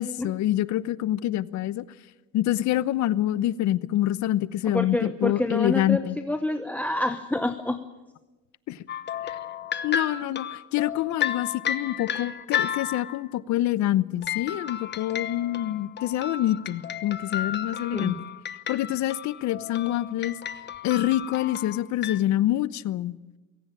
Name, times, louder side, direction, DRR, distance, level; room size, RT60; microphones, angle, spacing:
voice 1, 0.0-1.9 2.3-6.2 8.7-8.8 9.2-9.4 9.8-18.2 18.7-20.4 20.8-23.2, left 13 dB, 60° left, 0.9 m, -26 dB
voice 2, 4.7-7.8 17.9-18.2, left 1 dB, 5° left, 0.9 m, -27 dB
sound 1, 8.9-13.3 14.2-22.2, left 9 dB, 35° left, 1.1 m, -33 dB
23.5 x 17.0 x 9.1 m
cardioid pair, 125°, 32 cm